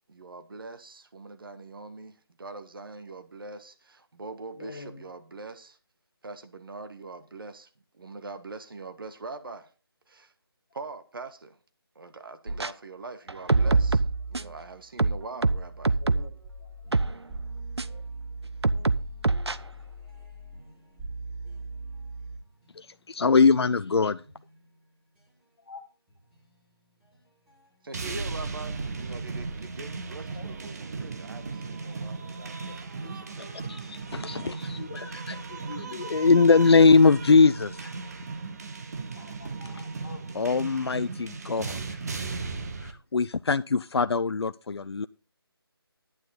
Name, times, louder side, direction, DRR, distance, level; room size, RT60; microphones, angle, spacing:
voice 1, 0.1-5.8 6.2-7.7 7.9-9.7 10.1-10.3 10.7-11.6 11.9-16.0 27.8-33.9, right 3 dB, 60° right, 1.4 m, -43 dB
voice 2, 4.6-5.0 16.0-16.3 17.8-18.0 25.7-25.8 30.3-30.4 39.1-40.2, left 4 dB, 45° left, 2.1 m, -45 dB
sound 1, 12.5-12.7 13.3-14.6 15.0-16.4 16.9-17.1 17.8-17.9 18.6-19.6, right 3 dB, 90° right, 0.7 m, -24 dB
sound 2, 16.4-23.7 24.2-25.4 26.1-28.2, right 2 dB, 5° right, 2.5 m, -42 dB
voice 3, 22.8-24.2 33.4-37.9 40.3-41.8 42.8-45.1, left 4 dB, 80° left, 0.5 m, -22 dB
sound 3, 27.9-42.9, right 4 dB, 40° right, 1.4 m, -36 dB
11.5 x 9.6 x 4.0 m
figure-of-eight pair, 160°, 13 cm